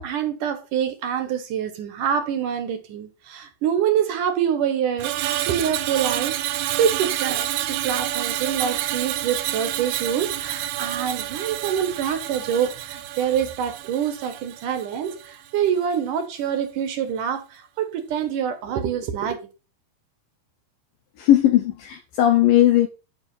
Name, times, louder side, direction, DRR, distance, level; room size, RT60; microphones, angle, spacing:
voice 1, 0.0-19.4, right 8 dB, 65° right, 2.3 m, -26 dB
Screech, 5.0-15.4 15.7-16.0, right 13 dB, 85° right, 3.2 m, -29 dB
voice 2, 21.2-22.9, left 12 dB, 75° left, 2.2 m, -17 dB
12.5 x 6.1 x 5.5 m
omnidirectional pair, 5.0 m